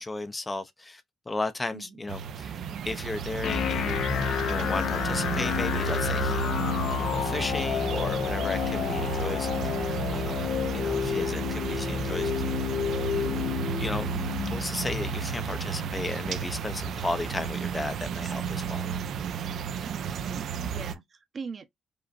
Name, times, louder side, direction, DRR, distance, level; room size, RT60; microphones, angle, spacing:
voice 1, 0.0-4.1 4.4-6.5 7.0-12.5 13.1-14.2 14.5-18.9, left 2 dB, 20° left, 0.5 m, -35 dB
voice 2, 1.7-2.1 19.8-21.7, right 5 dB, 45° right, 0.8 m, -41 dB
sound 1, 2.1-21.0, right 7 dB, 70° right, 0.5 m, -33 dB
sound 2, 3.4-17.4, left 8 dB, 70° left, 0.5 m, -30 dB
4.9 x 2.1 x 2.5 m
cardioid pair, 90°, 0 cm